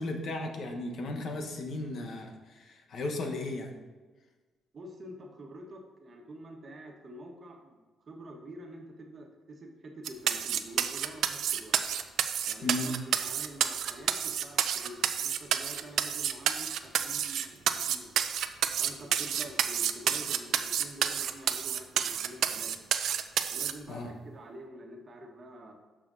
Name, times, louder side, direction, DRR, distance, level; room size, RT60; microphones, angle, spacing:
voice 1, 0.0-3.7 12.6-13.0 23.9-24.1, left 2 dB, 60° left, 2 dB, 1.1 m, -35 dB
voice 2, 4.7-11.7 12.4-12.9 13.2-18.1 18.8-22.7 23.5-25.7, right 1 dB, 45° right, 2 dB, 1.3 m, -47 dB
sound 1, 10.0-23.7, right 9 dB, 75° right, 0.4 m, -29 dB
12.5 x 4.9 x 2.7 m, 1.3 s
cardioid pair, 90°, 0 cm